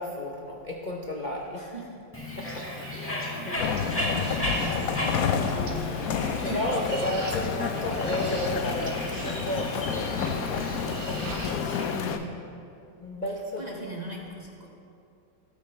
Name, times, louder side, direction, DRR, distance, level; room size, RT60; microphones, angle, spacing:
voice 1, 0.0-1.7 2.4-2.9 6.4-12.2 13.0-13.9, left 1 dB, 45° left, 0 dB, 0.6 m, -33 dB
voice 2, 1.5-1.9 2.9-7.1 11.9-12.4 13.3-14.7, right 2 dB, 30° right, -2 dB, 1.0 m, -40 dB
Bird, 2.1-12.1, left 1 dB, 5° left, 1.7 m, -35 dB
sound 1, 3.6-12.2, left 7 dB, 70° left, 0.8 m, -30 dB
sound 2, 3.6-11.6, right 3 dB, 50° right, 0.6 m, -40 dB
14.0 x 13.0 x 3.3 m, 2.5 s
omnidirectional pair, 2.0 m